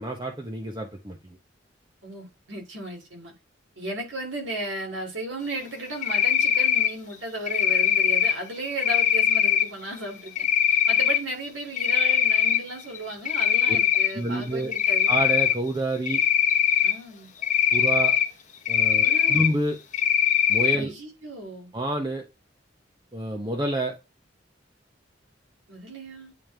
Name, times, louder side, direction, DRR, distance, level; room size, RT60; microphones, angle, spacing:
voice 1, 0.0-1.4 13.7-13.8 14.1-14.7 15.1-16.2 17.7-18.1 18.7-19.8 20.5-20.9 21.7-22.2 23.1-24.0, right 1 dB, 25° right, 0.8 m, -28 dB
voice 2, 2.0-3.3 3.8-15.1 16.8-17.3 19.0-19.5 20.8-21.7 25.7-26.3, right 1 dB, 90° right, 2.5 m, -35 dB
Cricket, 6.0-6.9 7.5-8.3 8.8-9.6 10.4-11.2 11.6-12.6 13.0-14.1 14.7-15.5 16.1-16.9 17.4-18.2 18.7-19.5 19.9-20.8, left 8 dB, 40° left, 0.9 m, -21 dB
9.0 x 3.2 x 3.3 m
head